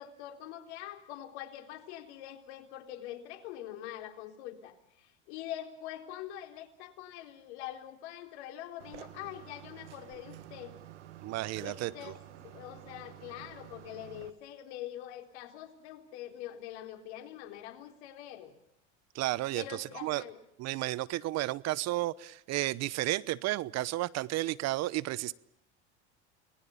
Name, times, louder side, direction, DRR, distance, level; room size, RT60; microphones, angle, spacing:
voice 1, 0.0-10.8 11.6-18.5 19.5-20.4, left 12 dB, 70° left, 6 dB, 4.0 m, -44 dB
sound 1, 8.8-14.3, right 13 dB, 85° right, 1.7 m, -50 dB
voice 2, 11.2-12.1 19.1-20.2 20.6-25.3, right 17 dB, 50° right, 21 dB, 0.9 m, -32 dB
30.0 x 20.5 x 7.1 m, 0.76 s
hypercardioid pair, 95°, 35 cm